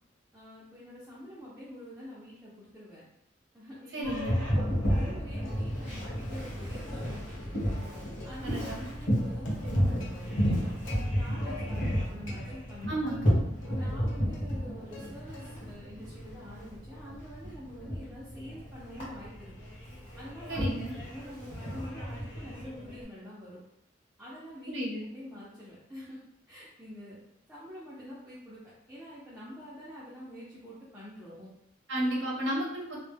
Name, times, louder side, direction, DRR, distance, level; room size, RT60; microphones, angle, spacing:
voice 1, 0.3-3.0 3.5-7.8 8.2-13.0 13.7-19.5 20.2-20.7 21.1-23.6 24.2-24.7 25.1-26.2 26.5-27.2 27.5-28.6 28.9-31.5 32.0-32.1, equal, 5° right, -9 dB, 0.5 m, -46 dB
voice 2, 3.9-4.4 8.4-8.8 12.9-13.4 20.5-20.9 24.7-25.0 31.9-33.0, right 1 dB, 65° right, -3 dB, 0.7 m, -32 dB
Boat Water vehicle, 4.0-23.0, equal, 30° left, 1.1 m, -32 dB
Plucked string instrument, 5.4-6.1 6.3-6.5 6.9-8.9 9.2-11.0 11.4-12.0 12.3-13.2 13.6-15.1 15.3-15.8 16.2-20.5, left 2 dB, 80° left, 0.6 m, -51 dB
2.1 x 2.1 x 3.3 m, 0.82 s
head